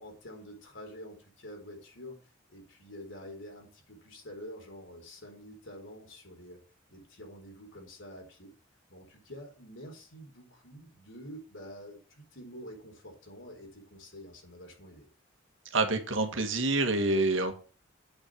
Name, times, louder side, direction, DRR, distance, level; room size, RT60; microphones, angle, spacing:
voice 1, 0.0-2.2 2.5-6.6 6.9-8.5 8.9-15.1, equal, 70° left, 1 dB, 4.3 m, -47 dB
voice 2, 15.7-17.5, right 2 dB, 70° right, 5 dB, 1.8 m, -27 dB
8.7 x 5.8 x 7.4 m, 0.38 s
head